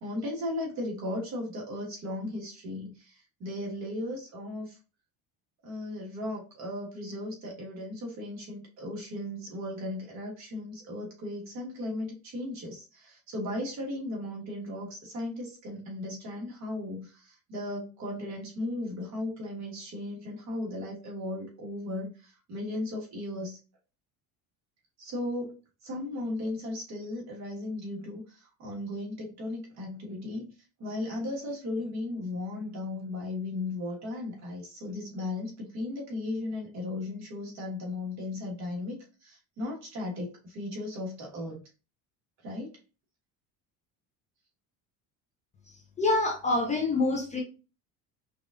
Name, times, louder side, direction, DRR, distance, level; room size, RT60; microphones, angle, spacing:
voice 1, 0.0-3.1 3.4-4.7 5.6-17.1 17.5-22.1 22.5-23.6 25.0-25.5 25.8-28.2 28.6-30.5 30.8-41.6 42.4-42.7, left 1 dB, 45° right, -2 dB, 1.5 m, -36 dB
voice 2, 46.0-47.4, left 2 dB, 20° left, 0 dB, 0.5 m, -26 dB
5.0 x 2.4 x 2.4 m, 0.33 s
cardioid pair, 155°, 37 cm